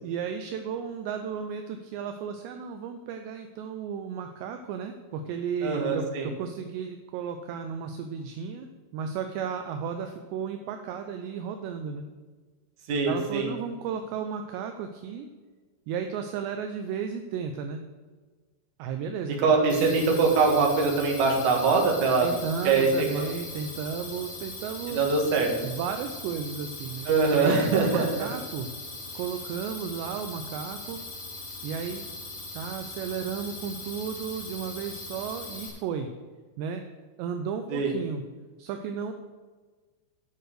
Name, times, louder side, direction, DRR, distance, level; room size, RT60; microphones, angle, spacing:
voice 1, 0.0-8.7 8.9-12.0 13.1-15.3 15.9-17.8 18.8-19.8 22.2-25.0 25.6-28.7 29.1-31.0 31.6-32.1 32.5-36.1 36.6-36.8 37.2-38.2 38.6-39.1, right 7 dB, 80° right, 6 dB, 2.6 m, -34 dB
voice 2, 5.6-6.3 12.9-13.5 19.4-22.3 22.6-22.9 24.9-25.5 27.1-28.3 37.7-37.9, right 4 dB, 55° right, 0 dB, 2.4 m, -23 dB
sound 1, 19.7-35.7, left 2 dB, 45° left, 1.3 m, -40 dB
9.3 x 6.6 x 6.6 m, 1.4 s
omnidirectional pair, 5.6 m